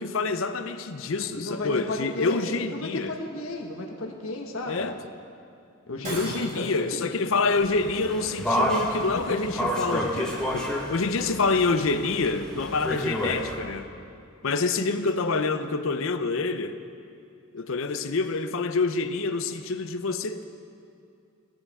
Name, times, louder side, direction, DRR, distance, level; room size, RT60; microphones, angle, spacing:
voice 1, 0.0-3.1 4.6-5.0 6.1-13.9 14.4-16.8 17.5-20.4, left 3 dB, 70° left, 10 dB, 0.6 m, -27 dB
voice 2, 1.3-4.9 5.9-7.1 9.3-9.4, left 2 dB, 85° left, 1 dB, 1.4 m, -33 dB
Shatter, 6.0-6.9, right 1 dB, 40° right, 4.1 m, -36 dB
sound 1, 7.5-13.5, equal, 5° left, 1.3 m, -30 dB
18.5 x 12.0 x 3.6 m, 2.4 s
head